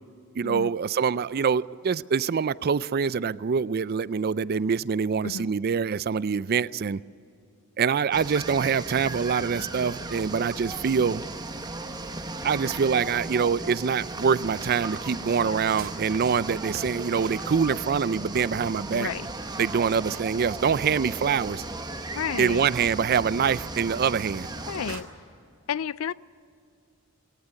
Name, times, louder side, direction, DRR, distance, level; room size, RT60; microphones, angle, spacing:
voice 1, 0.4-7.0 7.8-11.2 12.4-19.1 19.6-21.6 22.4-24.5, right 6 dB, 45° right, 19 dB, 0.4 m, -25 dB
sound 1, 8.1-25.0, right 2 dB, 20° right, 1.0 m, -36 dB
sound 2, 14.4-18.0 18.3-18.8 19.1-19.2 19.6-21.0 21.4-25.0, right 4 dB, 70° right, 2.2 m, -46 dB
voice 2, 18.9-19.3 22.1-22.7 24.6-25.1 25.7-26.1, left 7 dB, 70° left, 20 dB, 0.4 m, -31 dB
19.0 x 18.0 x 9.6 m, 2.6 s
head